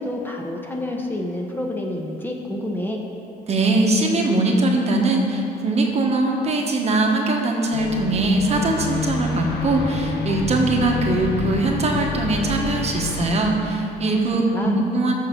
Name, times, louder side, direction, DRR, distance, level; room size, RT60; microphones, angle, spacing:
voice 1, 0.0-3.0 14.0-14.2 14.5-14.8, left 1 dB, 10° left, 0 dB, 0.9 m, -28 dB
voice 2, 3.5-15.1, right 2 dB, 40° right, 1 dB, 1.2 m, -21 dB
sound 1, 7.7-13.3, left 3 dB, 75° left, 0.9 m, -27 dB
14.0 x 6.4 x 3.8 m, 2.9 s
cardioid pair, 110°, 17 cm